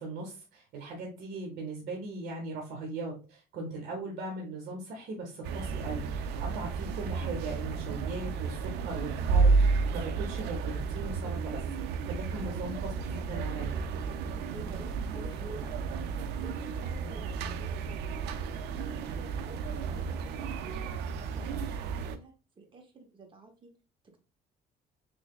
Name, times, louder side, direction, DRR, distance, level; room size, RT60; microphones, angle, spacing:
voice 1, 0.0-11.6 12.0-13.7, right 2 dB, 70° right, 0 dB, 0.9 m, -39 dB
sound 1, 5.4-22.2, right 4 dB, 85° right, 0.4 m, -32 dB
voice 2, 12.4-12.8 14.5-18.2 18.5-20.2 20.6-20.9 21.2-23.7 24.0-24.2, right 3 dB, 30° right, 3 dB, 0.9 m, -50 dB
3.2 x 3.1 x 2.3 m, 0.33 s
cardioid pair, 110°, 17 cm